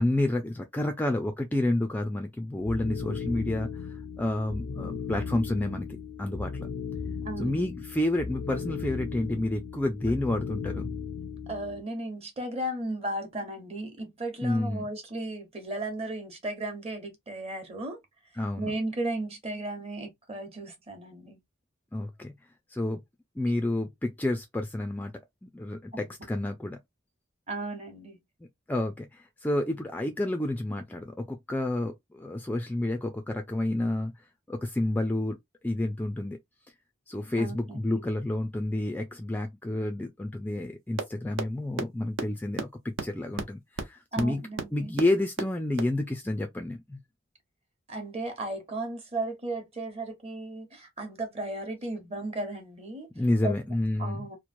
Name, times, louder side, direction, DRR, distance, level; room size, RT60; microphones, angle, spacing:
voice 1, 0.0-3.7 4.2-5.9 6.2-6.7 7.4-10.9 14.4-14.9 18.4-18.8 21.9-22.3 22.7-23.0 23.4-25.1 25.4-26.8 28.7-34.1 34.5-35.4 35.6-36.4 37.1-44.4 44.7-47.0 53.2-54.3, left 1 dB, 10° left, 0.3 m, -29 dB
sound 1, 2.6-11.8, left 5 dB, 75° left, 0.4 m, -36 dB
voice 2, 7.2-7.7 11.5-18.0 18.6-21.4 27.5-28.2 37.4-38.0 44.1-44.9 47.9-53.1 53.4-53.5 54.0-54.4, right 2 dB, 30° right, 1.0 m, -35 dB
sound 2, 41.0-41.1 41.4-41.5 41.8-41.9 42.2-42.3 42.6-42.7 43.0-43.1 43.4-43.5 43.8-43.9 44.2-44.3 44.6-44.7 45.0-45.1 45.4-45.5 45.8-45.9, right 4 dB, 70° right, 0.6 m, -29 dB
3.0 x 2.1 x 2.4 m
head